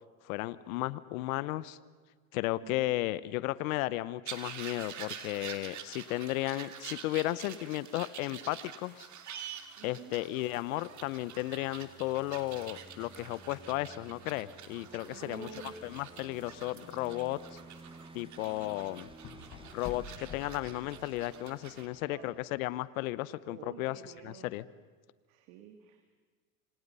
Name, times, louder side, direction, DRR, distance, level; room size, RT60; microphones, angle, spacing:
voice 1, 0.2-1.8 2.3-9.1 9.8-15.5 15.8-17.6 18.1-19.1 19.7-24.7, left 17 dB, 80° left, 18 dB, 1.0 m, -34 dB
voice 2, 2.6-3.0 9.8-10.2 15.1-15.7 22.0-22.3 23.5-24.5 25.3-26.0, right 8 dB, 65° right, 7 dB, 2.3 m, -49 dB
sound 1, 4.2-21.9, right 8 dB, 40° right, 2.8 m, -47 dB
sound 2, 9.5-22.8, right 3 dB, 10° right, 1.7 m, -55 dB
sound 3, 15.6-21.5, left 6 dB, 50° left, 6.3 m, -50 dB
28.0 x 26.0 x 5.6 m, 1.5 s
supercardioid pair, 95°, 42 cm